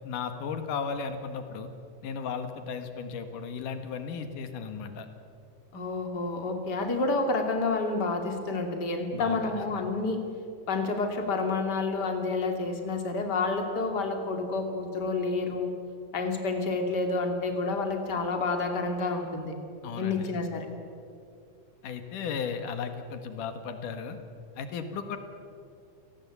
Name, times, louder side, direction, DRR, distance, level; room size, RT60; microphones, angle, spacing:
voice 1, 0.0-1.7 2.0-5.1 9.1-9.8 19.8-20.3 21.8-24.2 24.6-25.2, left 6 dB, 85° left, 8 dB, 3.1 m, -35 dB
voice 2, 5.7-10.2 10.7-15.7 16.1-19.5 20.0-20.7, left 3 dB, 35° left, 4 dB, 3.0 m, -29 dB
30.0 x 18.5 x 8.3 m, 2.4 s
omnidirectional pair, 3.6 m